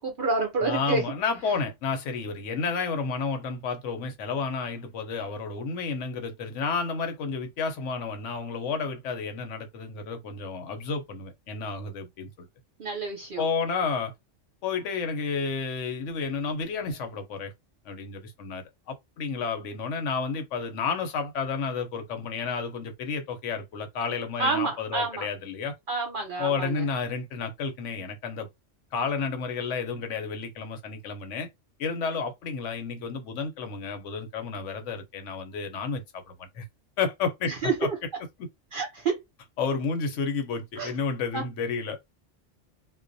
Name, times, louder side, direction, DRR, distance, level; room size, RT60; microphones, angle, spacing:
voice 1, 0.0-1.0 12.8-13.4 24.4-25.3 25.9-26.8 37.5-37.9 38.7-39.2 40.8-40.9 41.3-41.4, right 3 dB, 55° right, 0.7 m, -28 dB
voice 2, 0.6-12.5 13.4-14.1 14.6-17.5 17.8-25.7 26.4-28.5 28.9-31.5 31.8-36.7 37.0-37.5 37.8-37.9 39.6-42.0, left 5 dB, 85° left, 1.0 m, -31 dB
2.3 x 2.1 x 2.5 m
omnidirectional pair, 1.2 m